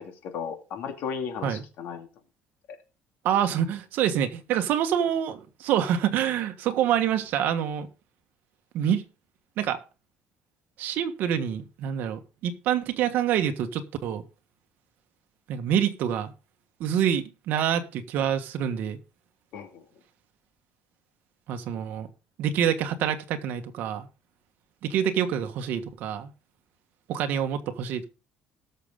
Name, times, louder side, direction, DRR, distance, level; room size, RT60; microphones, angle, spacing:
voice 1, 0.0-2.1 19.5-19.8, left 6 dB, 65° left, 2.3 m, -35 dB
voice 2, 3.2-7.9 8.7-9.0 9.6-9.8 10.8-14.2 15.5-16.3 16.8-19.0 21.5-22.1 22.4-24.1 24.8-26.3 27.1-28.1, right 9 dB, 60° right, 1.5 m, -26 dB
19.0 x 6.8 x 3.7 m
cardioid pair, 170°, 4 cm